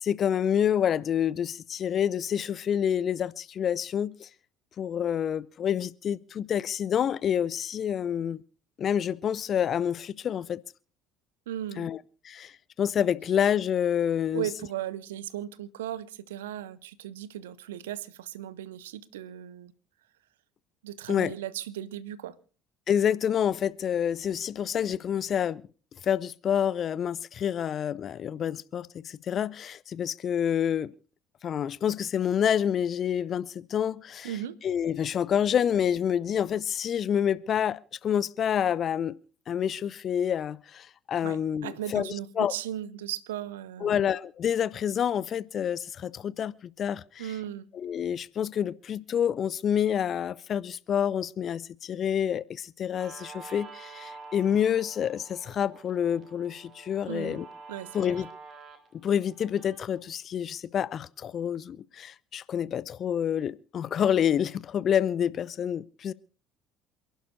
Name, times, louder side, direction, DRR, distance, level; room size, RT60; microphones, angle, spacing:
voice 1, 0.0-4.3 4.8-8.4 8.8-10.6 11.8-12.0 12.2-12.5 12.8-14.4 21.1-21.3 22.9-25.6 26.0-30.9 31.4-34.3 34.6-39.2 39.5-42.5 43.8-47.3 47.7-57.5 57.9-58.3 59.0-66.1, left 9 dB, 45° left, 0.5 m, -28 dB
voice 2, 11.5-11.9 14.3-19.7 20.8-22.3 34.2-34.6 41.2-44.1 47.2-47.7 57.1-57.4 57.7-58.2, right 11 dB, 75° right, 0.7 m, -37 dB
Guitar, 53.0-60.0, right 4 dB, 40° right, 3.0 m, -48 dB
28.0 x 11.5 x 2.6 m
figure-of-eight pair, 60°, 0 cm